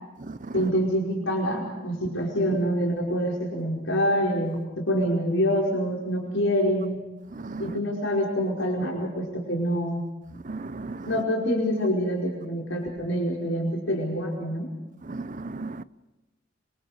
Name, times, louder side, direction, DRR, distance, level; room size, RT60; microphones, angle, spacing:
voice 1, 0.5-7.0 7.6-10.0 11.1-14.7, equal, 80° left, 5.2 m, -26 dB
voice 2, 7.4-7.7 10.5-11.1 15.1-15.8, right 3 dB, 40° right, 0.7 m, -35 dB
26.0 x 25.5 x 5.0 m
head